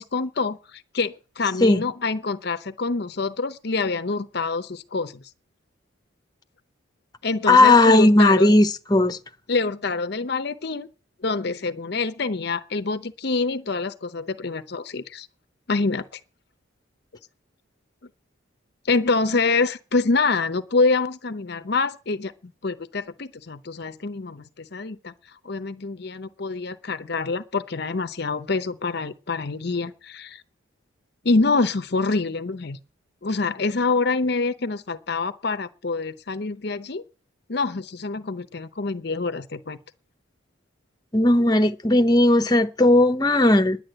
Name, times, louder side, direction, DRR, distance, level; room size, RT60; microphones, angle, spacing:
voice 1, 0.0-5.2 7.2-8.5 9.5-10.9 11.2-15.3 15.7-16.2 18.8-30.4 31.2-32.8 33.2-37.0 37.5-39.8, left 3 dB, 50° left, 0.7 m, -26 dB
voice 2, 7.5-9.2 41.1-43.8, left 2 dB, 20° left, 0.9 m, -16 dB
10.5 x 9.9 x 7.8 m
head